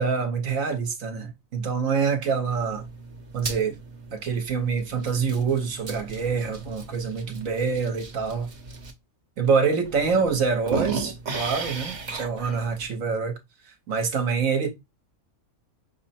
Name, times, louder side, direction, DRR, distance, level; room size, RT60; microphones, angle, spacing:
voice 1, 0.0-2.9 3.3-3.8 4.1-8.5 9.4-13.4 13.6-14.7, right 5 dB, 65° right, 1.3 m, -26 dB
sound 1, 2.5-8.9 9.5-9.6 9.9-12.9, right 4 dB, 40° right, 0.8 m, -36 dB
6.0 x 2.1 x 4.1 m
omnidirectional pair, 1.6 m